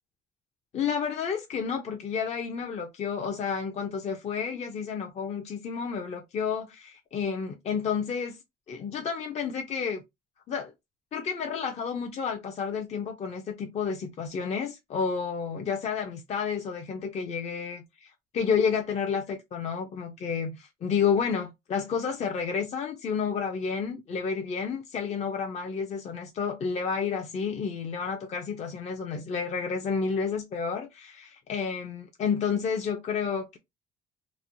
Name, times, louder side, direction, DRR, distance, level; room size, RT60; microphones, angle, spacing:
voice 1, 0.7-8.4 8.7-10.0 10.5-10.7 11.1-33.6, left 6 dB, 40° left, 0.5 m, -30 dB
3.0 x 2.1 x 2.5 m
cardioid pair, 110°, 17 cm